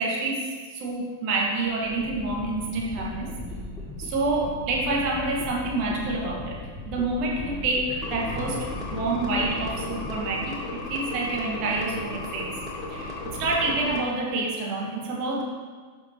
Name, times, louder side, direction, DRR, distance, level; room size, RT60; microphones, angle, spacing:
voice 1, 0.0-3.4 4.0-6.6 6.9-12.5 12.9-15.4, right 2 dB, 45° right, -1 dB, 1.5 m, -28 dB
sound 1, 1.4-10.9, left 1 dB, 15° left, 1.0 m, -38 dB
sound 2, 8.0-14.0, left 2 dB, 30° left, 1.5 m, -35 dB
12.0 x 5.2 x 3.0 m, 1.5 s
figure-of-eight pair, 90°, 0 cm